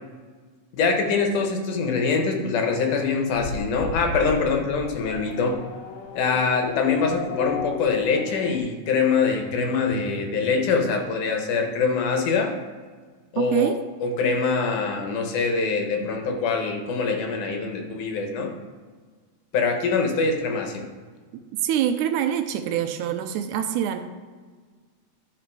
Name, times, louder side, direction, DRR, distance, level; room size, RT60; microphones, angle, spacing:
voice 1, 0.7-5.6 6.2-12.5 13.3-13.7 14.0-18.5 19.5-20.8, left 4 dB, 90° left, 3 dB, 2.6 m, -24 dB
Race car auto racing / Accelerating revving vroom, 3.3-8.6, left 5 dB, 70° left, 1.8 m, -34 dB
voice 2, 13.4-13.8 21.6-24.0, right 10 dB, 90° right, 8 dB, 2.1 m, -25 dB
12.0 x 4.1 x 4.6 m, 1.5 s
omnidirectional pair, 3.5 m